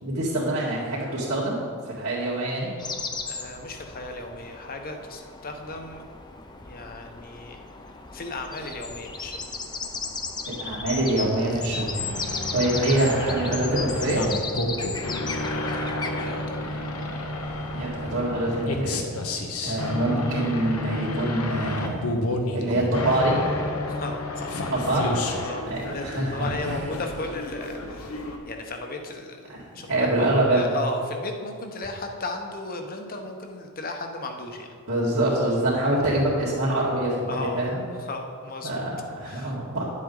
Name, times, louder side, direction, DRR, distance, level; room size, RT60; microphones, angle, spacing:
voice 1, 0.0-1.6 1.9-2.7 10.5-12.0 12.5-14.2 17.7-19.1 19.6-22.0 22.5-23.4 24.7-25.1 25.7-26.9 29.5-29.6 29.9-30.7 34.9-37.8 38.6-39.8, right 1 dB, 70° right, -10 dB, 2.0 m, -25 dB
sound 1, 2.8-18.6, left 4 dB, 20° left, 0.6 m, -36 dB
voice 2, 3.3-6.0 6.6-7.6 8.1-9.4 15.2-16.8 23.9-24.6 25.4-34.7 37.3-37.7 38.0-38.9 39.3-39.5, left 2 dB, 45° left, 4 dB, 0.9 m, -36 dB
sound 2, 12.0-28.4, left 2 dB, 80° left, 0.9 m, -30 dB
10.0 x 7.5 x 3.9 m, 2.2 s
head